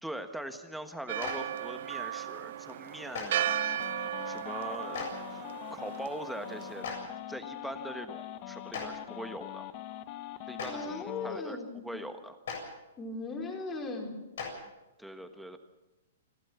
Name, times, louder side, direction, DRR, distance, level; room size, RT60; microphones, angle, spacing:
voice 1, 0.0-3.6 4.2-5.1 5.7-6.9 7.3-9.7 10.5-12.4 15.0-15.6, right 1 dB, ahead, 7 dB, 1.4 m, -42 dB
Church bell, 1.1-6.8, right 11 dB, 60° right, 1.0 m, -36 dB
Clapping, 1.2-1.3 3.1-3.2 4.9-5.1 6.8-6.9 8.7-8.8 10.5-10.7 12.4-12.5 14.3-14.5, left 6 dB, 70° left, 7.5 m, -36 dB
sound 1, 3.4-11.4, left 13 dB, 40° left, 1.0 m, -43 dB
voice 2, 10.6-11.9 13.0-14.1, left 3 dB, 20° left, 2 dB, 4.2 m, -38 dB
28.5 x 13.0 x 7.2 m, 1.0 s
hypercardioid pair, 140°, 0 cm